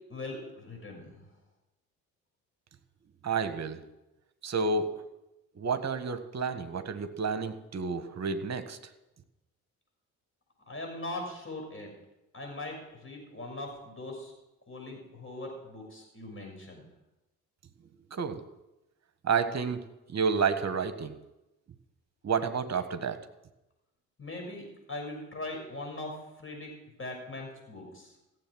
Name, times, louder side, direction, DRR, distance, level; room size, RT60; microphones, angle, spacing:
voice 1, 0.1-1.1 10.7-11.9 12.3-14.3 14.7-16.9 24.2-26.7 27.0-28.1, left 2 dB, 30° left, 1 dB, 6.3 m, -40 dB
voice 2, 3.2-3.8 4.4-4.9 5.6-8.8 18.1-18.4 19.2-19.8 20.1-21.1 22.2-23.2, right 5 dB, 40° right, 10 dB, 1.4 m, -30 dB
15.5 x 7.7 x 6.2 m, 0.95 s
hypercardioid pair, 45°, 40 cm